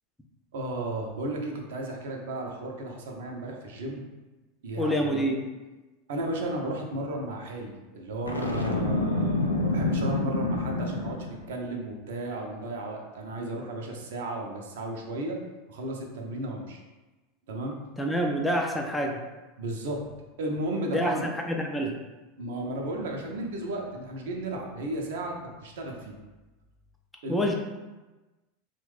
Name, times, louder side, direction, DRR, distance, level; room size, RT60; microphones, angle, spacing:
voice 1, 0.5-4.1 4.6-5.3 6.1-15.4 15.7-16.8 17.5-17.8 19.6-20.0 20.4-21.2 22.4-26.2 27.2-27.5, right 1 dB, 60° right, 1 dB, 0.5 m, -34 dB
voice 2, 4.8-5.4 18.0-19.2 20.9-22.0 27.3-27.5, equal, 5° left, 1 dB, 0.3 m, -27 dB
Boom, 8.3-11.5, left 2 dB, 80° left, 0.3 m, -27 dB
3.0 x 2.1 x 3.2 m, 1.2 s
figure-of-eight pair, 85°, 0 cm